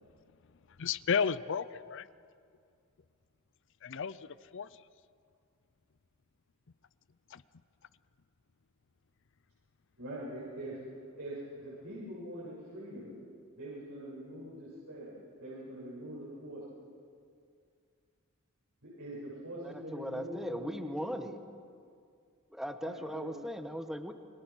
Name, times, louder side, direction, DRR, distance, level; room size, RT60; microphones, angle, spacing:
voice 1, 0.8-2.1 3.8-4.7 7.3-7.4, left 6 dB, 60° left, 17 dB, 0.6 m, -33 dB
voice 2, 10.0-10.8 11.2-13.1 13.6-15.1 15.4-16.6 18.8-21.3 22.8-23.3, right 1 dB, 85° right, -8 dB, 7.5 m, -43 dB
voice 3, 19.6-21.4 22.5-24.1, equal, ahead, 7 dB, 1.1 m, -38 dB
28.5 x 22.5 x 6.3 m, 2.3 s
head